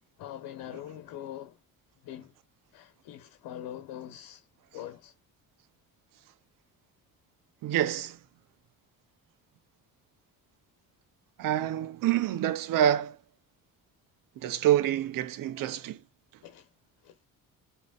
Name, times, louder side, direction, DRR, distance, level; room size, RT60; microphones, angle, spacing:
voice 1, 0.2-1.6 2.0-2.3 2.7-4.5 4.7-5.1 16.4-16.7 17.0-17.2, left 11 dB, 80° left, 1.3 m, -43 dB
voice 2, 7.6-8.2 11.4-13.2 14.4-16.0, right 11 dB, 70° right, 0.9 m, -27 dB
5.4 x 3.0 x 2.4 m
cardioid pair, 95°, 35 cm